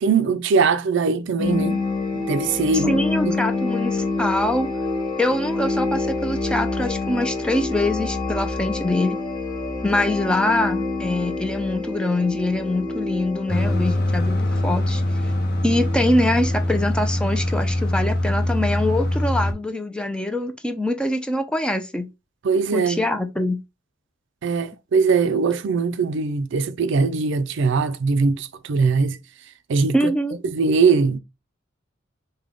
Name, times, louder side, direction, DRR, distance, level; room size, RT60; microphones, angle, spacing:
voice 1, 0.0-1.8 2.1-3.0 3.2-3.3 22.4-23.0 24.4-29.2 29.7-30.1 30.4-31.2, right 4 dB, 65° right, 0.4 m, -21 dB
sound 1, 1.4-16.9, left 3 dB, 25° left, 0.9 m, -27 dB
voice 2, 2.7-4.7 5.2-9.2 9.8-15.3 15.6-22.1 22.7-23.6 29.9-30.4, left 1 dB, 5° left, 0.4 m, -24 dB
sound 2, 13.5-19.5, left 1 dB, 55° left, 0.7 m, -23 dB
3.6 x 2.2 x 3.5 m
head